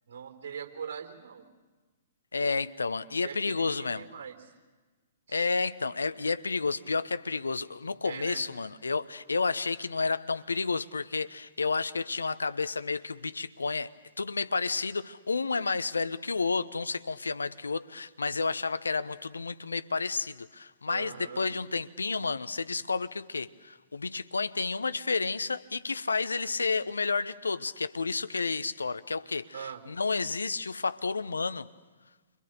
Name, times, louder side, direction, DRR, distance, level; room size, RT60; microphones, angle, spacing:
voice 1, 0.1-1.5 3.2-4.5 5.3-5.5 8.0-8.5 20.9-21.5 29.5-29.8, right 7 dB, 55° right, 4.0 m, -41 dB
voice 2, 2.3-4.1 5.3-31.7, left 4 dB, 80° left, 0.9 m, -31 dB
30.0 x 25.5 x 6.7 m
figure-of-eight pair, 115°, 0 cm